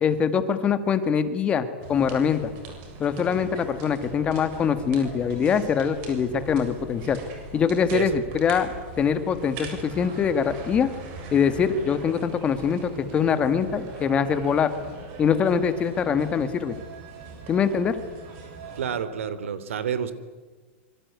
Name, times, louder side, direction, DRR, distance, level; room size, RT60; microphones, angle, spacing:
voice 1, 0.0-2.5 3.0-7.2 7.5-10.9 11.3-14.7 15.2-16.8 17.5-18.0, left 7 dB, 15° left, 11 dB, 1.6 m, -23 dB
sound 1, 1.8-19.0, right 4 dB, 35° right, 7.4 m, -41 dB
voice 2, 18.7-20.1, right 8 dB, 90° right, 14 dB, 3.2 m, -29 dB
25.5 x 24.5 x 9.5 m, 1.3 s
supercardioid pair, 165°, 7 cm